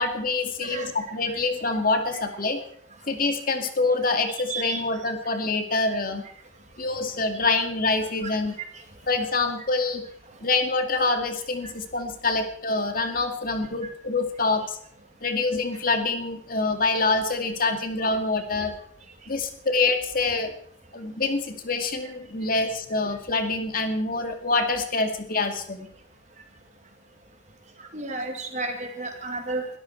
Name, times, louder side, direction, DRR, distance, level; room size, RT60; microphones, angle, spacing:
voice 1, 0.0-2.6 3.1-6.2 6.8-8.5 9.1-10.0 10.4-14.8 15.2-18.7 19.3-20.5 20.9-25.9, left 3 dB, 50° left, 5 dB, 2.1 m, -26 dB
voice 2, 0.6-1.0 1.3-1.4 4.3-4.8 8.2-8.7 11.6-11.7 13.1-13.2 22.6-22.7 27.8-29.7, right 3 dB, 40° right, 4 dB, 2.4 m, -33 dB
21.5 x 13.5 x 4.5 m, 0.63 s
head